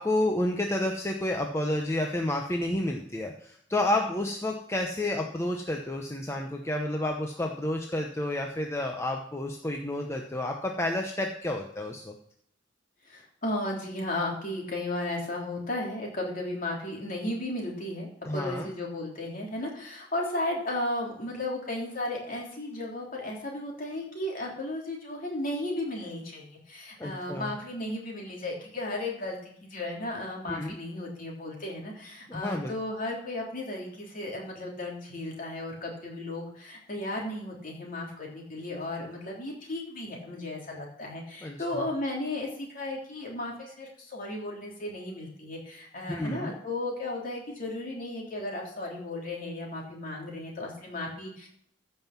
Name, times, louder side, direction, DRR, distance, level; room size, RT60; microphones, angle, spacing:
voice 1, 0.0-12.1 18.3-18.7 27.0-27.5 30.5-30.8 32.3-32.7 41.4-41.6 46.1-46.5, left 1 dB, 15° left, 2 dB, 0.9 m, -30 dB
voice 2, 13.1-51.5, left 1 dB, 45° left, -1 dB, 3.4 m, -35 dB
15.0 x 5.7 x 5.9 m, 0.69 s
head